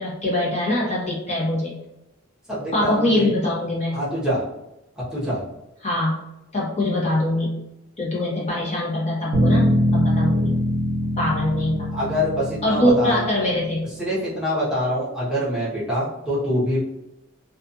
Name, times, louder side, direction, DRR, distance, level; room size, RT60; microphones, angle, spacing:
voice 1, 0.0-1.8 2.7-4.0 5.8-6.2 6.5-7.6 8.0-10.6 11.2-12.0 12.6-13.9, left 1 dB, 35° left, -6 dB, 0.8 m, -23 dB
voice 2, 2.5-3.3 3.9-4.4 5.0-5.4 11.0-11.1 11.9-13.3 14.0-16.8, equal, 5° right, -10 dB, 0.8 m, -25 dB
Bass guitar, 9.3-13.7, equal, 45° right, 0.7 m, -23 dB
2.4 x 2.3 x 2.6 m, 0.90 s
head